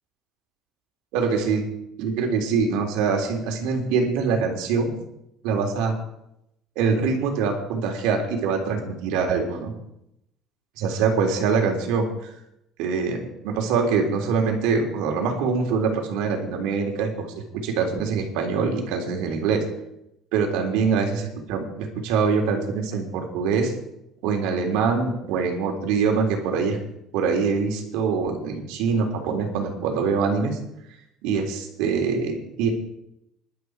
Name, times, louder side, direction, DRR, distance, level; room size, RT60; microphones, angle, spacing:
voice 1, 1.1-1.6 2.0-4.9 5.4-6.0 6.8-9.7 10.8-12.1 12.8-17.3 17.5-19.6 20.3-21.2 21.5-23.7 24.2-26.8 27.1-30.6 31.2-32.7, right 5 dB, 85° right, 3 dB, 3.4 m, -24 dB
19.5 x 12.0 x 4.8 m, 0.82 s
cardioid pair, 170°, 0 cm